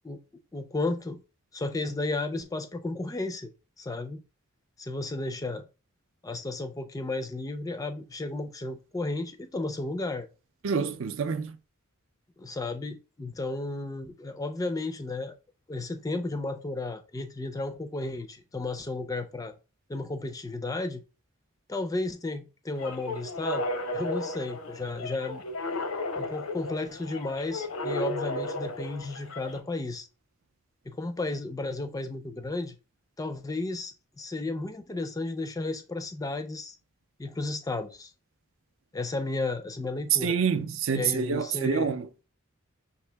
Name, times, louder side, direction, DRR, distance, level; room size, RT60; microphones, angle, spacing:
voice 1, 0.5-1.2 1.5-3.5 3.8-4.2 4.8-5.7 6.2-10.3 12.4-15.4 15.7-19.5 19.9-21.0 21.7-25.4 26.2-30.1 30.9-32.8 33.2-36.8 37.2-38.1 38.9-40.4 41.0-41.9, left 2 dB, 15° left, 0.4 m, -33 dB
voice 2, 10.6-11.6 40.1-42.1, right 6 dB, 65° right, 0.4 m, -27 dB
sound 1, 22.7-29.6, left 1 dB, 85° left, 0.8 m, -34 dB
5.4 x 2.8 x 3.3 m
head